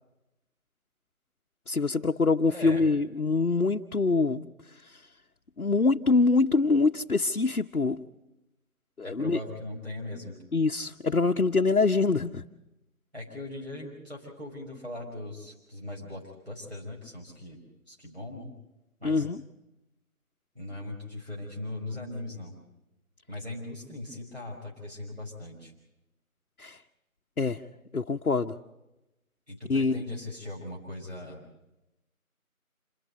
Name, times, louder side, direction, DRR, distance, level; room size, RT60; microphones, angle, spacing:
voice 1, 1.7-4.5 4.8-4.9 5.6-8.0 9.0-9.4 10.5-12.4 19.0-19.4 26.6-26.8 27.4-27.6 27.9-28.5 29.7-30.0, left 3 dB, 75° left, 2 dB, 0.9 m, -24 dB
voice 2, 2.5-2.9 9.0-10.4 13.1-17.6 17.9-18.5 19.0-19.3 20.6-22.5 23.3-25.7 29.5-31.5, left 1 dB, 45° right, -3 dB, 5.3 m, -39 dB
27.0 x 12.5 x 7.9 m, 0.95 s
figure-of-eight pair, 180°, 43 cm